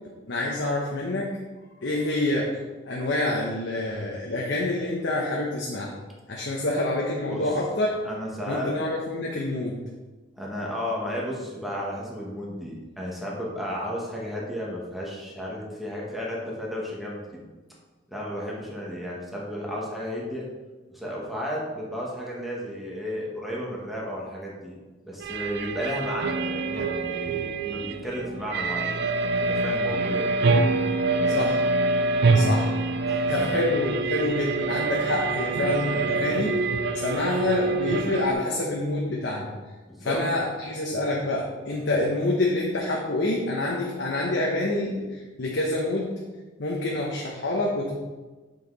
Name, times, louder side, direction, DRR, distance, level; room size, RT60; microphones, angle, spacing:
voice 1, 0.3-1.4 1.8-2.6 2.9-5.9 6.3-7.9 8.5-9.8 31.3-31.6 32.3-32.8 33.3-36.6 36.9-39.5 40.0-46.2 46.6-48.0, left 2 dB, 65° left, -2 dB, 1.0 m, -27 dB
voice 2, 8.0-8.7 10.4-17.4 18.1-20.5 20.9-24.8 25.1-28.9 29.4-30.3 31.2-31.5 33.1-33.6 39.9-40.2, equal, ahead, -5 dB, 1.6 m, -33 dB
sound 1, 25.2-38.3, right 3 dB, 60° right, 0.5 m, -25 dB
7.1 x 5.7 x 4.0 m, 1.2 s
head